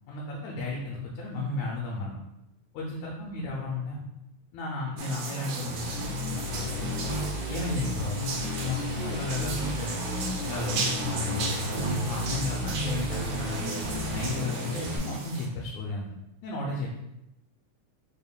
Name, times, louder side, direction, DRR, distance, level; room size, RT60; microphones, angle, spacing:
voice 1, 0.1-2.2 2.7-4.0 4.5-7.1 7.5-10.0 10.4-13.7 14.1-16.1 16.4-16.9, left 3 dB, 90° left, -2 dB, 2.0 m, -34 dB
sound 1, 5.0-15.5, right 4 dB, 75° right, 1.5 m, -36 dB
sound 2, 5.6-15.0, left 1 dB, 55° right, 1.1 m, -33 dB
4.6 x 3.5 x 2.2 m, 0.88 s
omnidirectional pair, 3.3 m